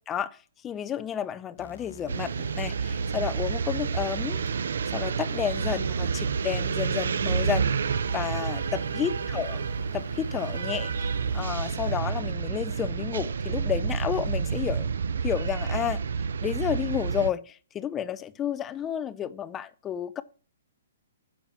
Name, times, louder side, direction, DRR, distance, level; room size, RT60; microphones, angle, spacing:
voice 1, 0.1-0.4 0.6-4.4 4.9-7.7 8.1-9.6 9.9-14.9 15.2-16.0 16.4-20.2, left 9 dB, 15° left, 0.5 m, -31 dB
sound 1, 1.6-12.0, left 5 dB, 70° left, 1.5 m, -46 dB
sound 2, 2.1-17.3, right 6 dB, 75° right, 0.5 m, -29 dB
9.4 x 7.1 x 7.3 m
hypercardioid pair, 170°, 0 cm